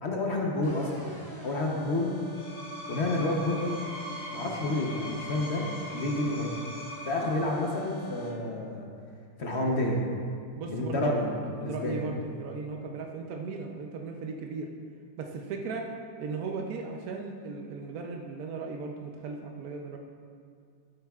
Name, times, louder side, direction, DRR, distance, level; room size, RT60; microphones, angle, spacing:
voice 1, 0.0-1.1 1.4-2.2 2.9-3.7 4.3-6.5 7.0-8.9 9.4-10.0 10.7-11.3 11.6-12.0, left 2 dB, 55° left, -1 dB, 0.7 m, -29 dB
sound 1, 0.6-8.3, equal, 10° left, 0.6 m, -45 dB
Screech, 2.2-7.7, right 1 dB, 80° left, 2.8 m, -41 dB
voice 2, 10.6-14.7 15.2-15.9 16.2-20.0, right 4 dB, 70° right, 2 dB, 0.9 m, -37 dB
13.5 x 8.6 x 2.4 m, 2.2 s
omnidirectional pair, 2.3 m